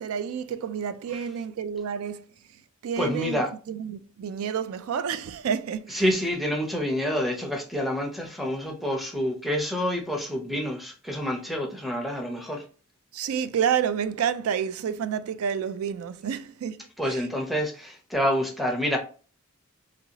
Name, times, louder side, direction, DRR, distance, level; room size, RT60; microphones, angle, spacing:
voice 1, 0.0-2.3 2.8-6.0 13.1-16.8 17.1-17.3, right 7 dB, 80° right, 0.3 m, -29 dB
voice 2, 3.0-3.5 5.9-12.6 17.0-19.0, equal, ahead, 0.6 m, -28 dB
3.0 x 2.7 x 2.7 m
head